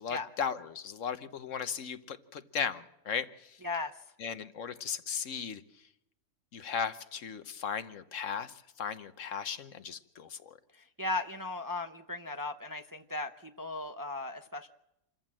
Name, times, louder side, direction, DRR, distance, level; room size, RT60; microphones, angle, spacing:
voice 1, 0.0-3.6 4.2-5.6 6.5-10.6, left 7 dB, 65° left, 11 dB, 1.3 m, -37 dB
voice 2, 3.6-4.0 10.7-14.7, left 2 dB, 20° right, 7 dB, 0.6 m, -37 dB
27.5 x 14.5 x 7.5 m, 0.86 s
omnidirectional pair, 1.4 m